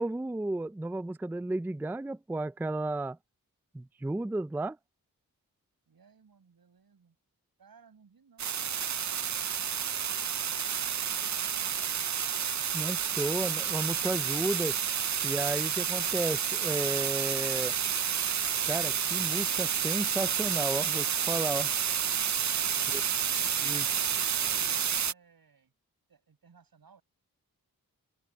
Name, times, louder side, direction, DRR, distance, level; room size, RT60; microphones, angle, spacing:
voice 1, 0.0-3.2 3.7-4.8 12.7-14.8 15.2-17.8 18.6-21.7 22.9-23.0 23.6-23.8, right 2 dB, 5° right, 0.4 m, -33 dB
voice 2, 5.9-7.2 7.6-12.8 22.6-23.1 23.6-25.7 26.1-27.0, right 6 dB, 80° right, 7.3 m, -61 dB
sound 1, 8.4-25.1, right 8 dB, 50° right, 0.6 m, -30 dB
open air
cardioid pair, 55°, 36 cm